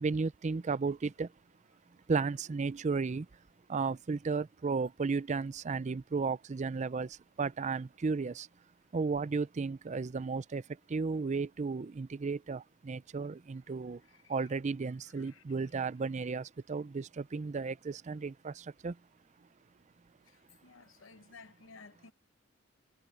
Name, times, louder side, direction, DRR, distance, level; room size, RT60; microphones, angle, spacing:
voice 1, 0.0-1.3 2.1-3.2 3.7-7.1 7.4-8.5 8.9-10.6 10.9-14.0 14.3-18.5 18.8-18.9, right 4 dB, 35° right, 0.4 m, -34 dB
voice 2, 20.6-22.1, left 4 dB, 75° left, 0.9 m, -54 dB
head